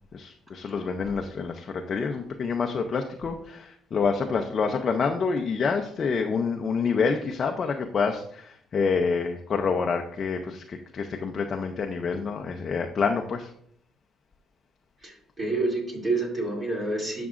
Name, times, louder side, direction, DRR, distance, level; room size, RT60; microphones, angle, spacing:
voice 1, 0.1-13.5, left 5 dB, 40° left, 3 dB, 0.6 m, -27 dB
voice 2, 15.0-17.3, right 2 dB, 25° right, -2 dB, 2.7 m, -28 dB
11.0 x 6.0 x 2.5 m, 0.66 s
cardioid pair, 140°, 0 cm